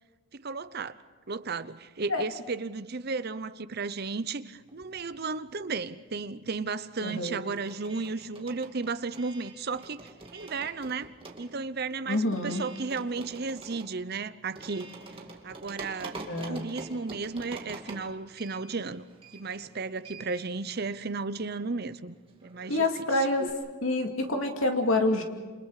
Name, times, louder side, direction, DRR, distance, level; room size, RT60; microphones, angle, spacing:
voice 1, 0.3-1.0 1.3-11.1 11.4-14.9 15.4-19.0 19.3-22.2 22.4-22.9 23.2-23.3, right 4 dB, 45° right, 0.8 m, -34 dB
sound 1, 4.7-5.9 6.2-23.5, right 2 dB, 25° right, 2.3 m, -47 dB
voice 2, 7.0-7.4 12.1-12.6 16.3-16.6 22.7-23.5 23.8-25.2, left 2 dB, 70° left, 2.7 m, -27 dB
28.5 x 27.5 x 5.0 m
head